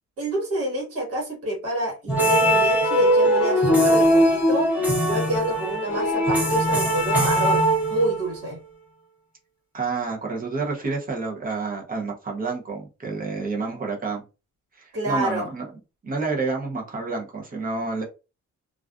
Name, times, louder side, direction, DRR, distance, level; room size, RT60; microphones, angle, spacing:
voice 1, 0.2-4.7 5.0-8.6 14.9-15.5, right 1 dB, 50° right, 1.3 m, -28 dB
sound 1, 2.1-8.4, equal, 5° right, 1.0 m, -20 dB
voice 2, 9.7-14.2 14.8-15.6 16.0-18.0, right 4 dB, 30° right, 0.7 m, -29 dB
2.4 x 2.3 x 2.3 m
cardioid pair, 150°, 30 cm